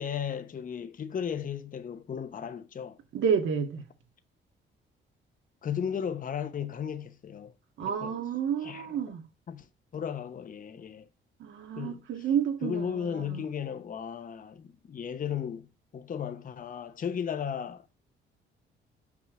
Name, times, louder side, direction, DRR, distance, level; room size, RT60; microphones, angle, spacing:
voice 1, 0.0-3.0 5.6-7.5 7.8-8.2 8.6-9.0 9.5-9.7 9.9-11.1 11.7-12.3 12.6-15.7 15.9-17.9, left 8 dB, 45° left, 0.9 m, -35 dB
voice 2, 3.1-3.9 7.8-9.2 11.4-13.4, right 7 dB, 75° right, 1.8 m, -30 dB
6.1 x 6.0 x 3.8 m
cardioid pair, 90°, 20 cm